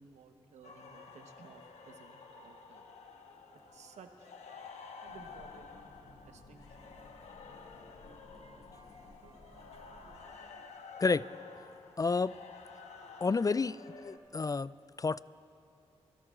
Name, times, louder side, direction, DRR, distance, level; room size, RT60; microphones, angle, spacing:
voice 1, 0.0-2.9 3.7-4.3 5.0-5.7 6.2-7.1 9.2-9.4, right 5 dB, 85° right, 5 dB, 1.1 m, -57 dB
sound 1, 0.6-14.2, left 5 dB, 85° left, 1.1 m, -51 dB
sound 2, 3.2-10.8, right 3 dB, 65° right, 4.7 m, -63 dB
sound 3, 5.1-10.2, left 3 dB, 60° left, 1.5 m, -58 dB
voice 2, 12.0-12.3 13.2-13.8 14.0-14.7 15.0-15.2, left 4 dB, 30° left, 18 dB, 0.3 m, -29 dB
28.5 x 15.5 x 2.5 m, 2.6 s
cardioid pair, 45°, 11 cm